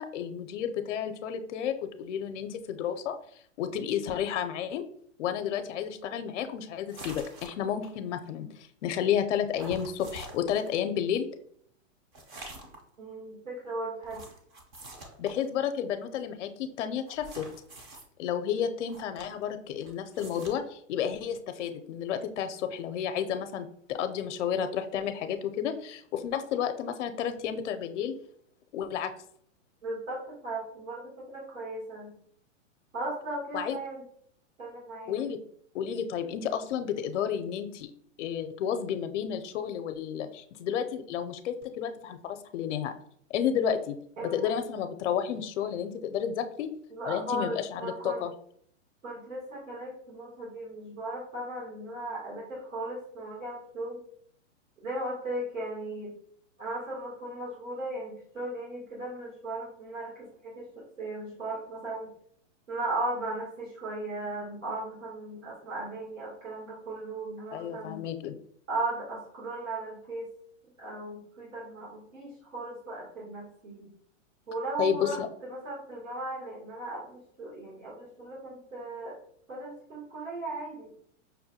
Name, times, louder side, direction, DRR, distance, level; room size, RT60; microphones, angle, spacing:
voice 1, 0.0-3.2 3.6-4.8 5.2-11.3 15.2-17.5 18.2-28.1 28.7-29.1 33.5-33.8 35.1-35.4 35.7-37.9 38.2-42.9 43.3-44.0 44.3-46.7 47.0-48.3 67.5-68.3 74.8-75.3, left 8 dB, 65° left, 9 dB, 0.5 m, -31 dB
sound 1, 6.9-7.9 9.5-10.7 12.1-12.9 14.0-15.5 17.1-18.0 18.9-19.5 19.8-20.5, right 1 dB, 20° right, 0.4 m, -46 dB
voice 2, 13.0-14.2 29.8-32.1 32.9-34.1 34.6-35.2 44.2-44.5 46.9-48.2 49.0-54.0 54.8-56.1 56.6-62.1 62.7-68.0 68.7-70.3 70.8-73.9 74.5-75.2 75.5-79.1 79.5-80.9, right 2 dB, 90° right, -5 dB, 1.6 m, -37 dB
5.4 x 2.2 x 2.7 m, 0.64 s
hypercardioid pair, 135°, 38 cm